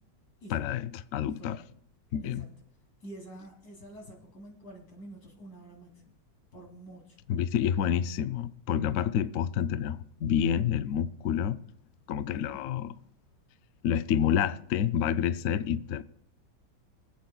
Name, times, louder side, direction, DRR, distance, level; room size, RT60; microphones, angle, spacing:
voice 1, 0.5-1.6 2.1-2.5 7.3-11.6 12.1-12.9 13.8-16.0, left 9 dB, 80° left, 0.7 m, -28 dB
voice 2, 1.2-1.6 2.2-2.5 3.0-6.2 6.5-7.2 12.3-12.6, right 1 dB, 60° left, 3.4 m, -48 dB
25.0 x 8.6 x 2.3 m
omnidirectional pair, 1.9 m